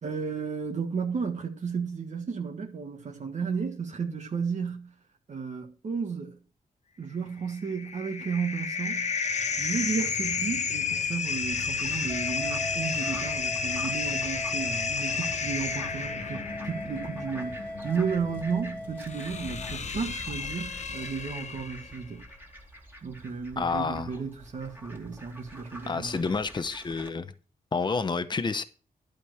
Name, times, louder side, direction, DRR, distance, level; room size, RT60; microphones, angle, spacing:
voice 1, 0.0-4.9 5.3-6.4 7.0-9.1 9.6-22.2 23.0-26.4, right 5 dB, 50° right, 1.6 m, -33 dB
sound 1, 7.4-22.0, left 5 dB, 50° left, 1.1 m, -32 dB
Fowl, 11.4-27.1, equal, 15° right, 2.7 m, -47 dB
sound 2, 12.1-19.8, left 1 dB, 10° left, 2.4 m, -39 dB
voice 2, 23.6-24.1 25.9-27.3 27.7-28.6, left 4 dB, 30° left, 0.8 m, -29 dB
11.5 x 5.2 x 6.2 m
wide cardioid pair, 110°, 15 cm